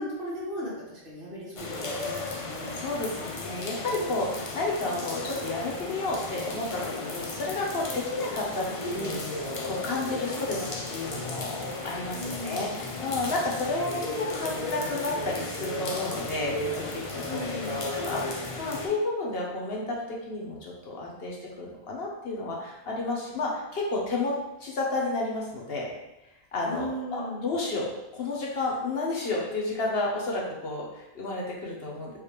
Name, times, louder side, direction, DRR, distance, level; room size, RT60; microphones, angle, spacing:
voice 1, 0.0-2.2 2.4-2.7 12.1-12.6 17.2-17.8 26.6-27.4, equal, 50° right, -6 dB, 1.5 m, -36 dB
sound 1, 1.6-18.9, left 2 dB, 40° left, 0.5 m, -34 dB
voice 2, 2.8-16.8 17.1-17.4 17.8-25.9 26.5-32.1, left 2 dB, 60° left, -3 dB, 1.0 m, -31 dB
4.7 x 3.3 x 3.2 m, 0.95 s
omnidirectional pair, 1.2 m